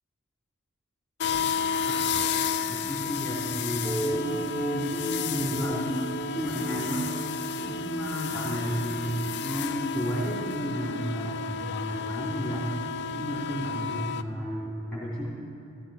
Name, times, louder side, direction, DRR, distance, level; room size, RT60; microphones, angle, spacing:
sound 1, 1.2-14.2, left 6 dB, 55° left, 0.5 m, -32 dB
voice 1, 2.7-6.0 6.3-7.1 7.5-12.7 13.1-15.3, equal, 5° left, -8 dB, 3.0 m, -32 dB
sound 2, 3.8-8.8, right 2 dB, 15° right, 0.6 m, -36 dB
16.0 x 14.5 x 4.7 m, 2.6 s
head